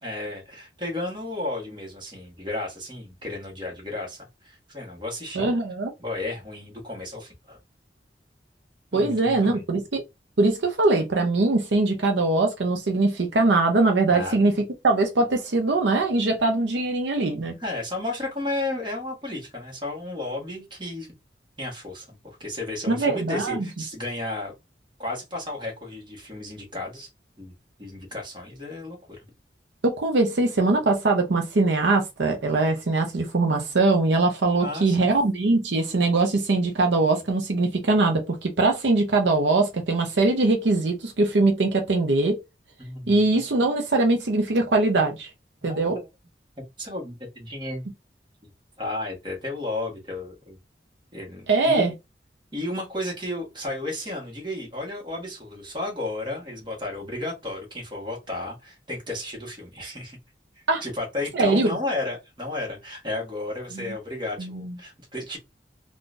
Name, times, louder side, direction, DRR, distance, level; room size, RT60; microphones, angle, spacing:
voice 1, 0.0-5.5 6.0-7.6 8.9-9.6 14.1-14.4 17.6-21.1 21.6-24.5 25.0-27.1 27.4-27.5 27.8-29.2 34.6-35.1 42.8-43.2 45.6-45.9 46.8-47.9 48.8-50.6 51.1-51.9 52.5-60.2 60.8-65.4, left 2 dB, 25° right, 1.4 m, -33 dB
voice 2, 5.3-5.9 8.9-10.0 10.4-14.5 14.8-17.5 22.9-23.7 29.8-42.4 43.1-45.3 45.6-46.0 51.5-51.9 60.7-60.8 61.3-61.8 63.7-63.8 64.4-64.7, right 2 dB, 80° right, 0.6 m, -22 dB
3.8 x 2.4 x 2.5 m
head